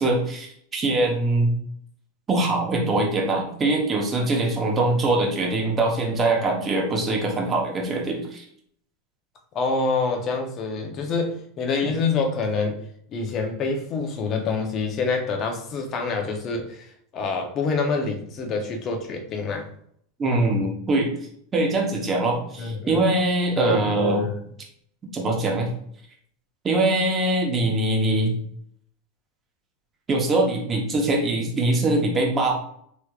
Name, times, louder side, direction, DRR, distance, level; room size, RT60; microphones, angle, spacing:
voice 1, 0.0-1.5 2.3-8.4 11.8-11.9 20.2-21.1 21.5-24.3 25.1-25.7 26.6-28.4 30.1-32.6, right 2 dB, 25° right, 0 dB, 0.9 m, -23 dB
voice 2, 9.5-12.8 13.1-19.7 22.6-23.0 23.6-24.4, left 4 dB, 35° left, 3 dB, 0.7 m, -26 dB
3.3 x 3.1 x 2.4 m, 0.66 s
supercardioid pair, 130°, 0 cm